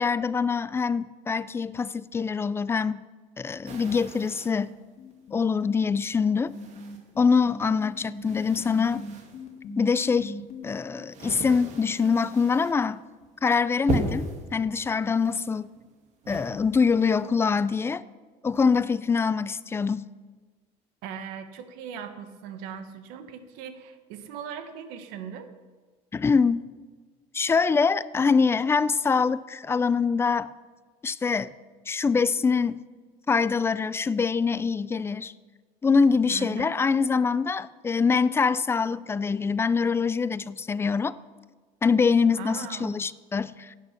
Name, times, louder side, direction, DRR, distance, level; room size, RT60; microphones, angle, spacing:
voice 1, 0.0-3.0 3.4-4.7 5.3-6.5 7.2-9.0 9.8-10.3 10.6-13.0 13.4-15.7 16.3-18.0 18.4-20.1 26.1-26.6 27.3-30.5 31.0-31.5 31.9-32.8 33.3-35.3 35.8-41.1 41.8-43.7, left 5 dB, 15° left, 0.4 m, -24 dB
sound 1, 3.6-4.7 5.4-5.5 6.5-7.3 7.6-9.5 10.2-12.9 13.2-13.5 13.8-14.5 15.1-15.9 16.2-17.2, right 3 dB, 50° right, 2.1 m, -37 dB
sound 2, 4.6-10.6, left 3 dB, 50° left, 2.0 m, -40 dB
voice 2, 21.0-25.5 36.3-36.8 42.3-42.9, right 8 dB, 85° right, 1.3 m, -39 dB
15.5 x 9.2 x 5.7 m
cardioid pair, 135°, 15 cm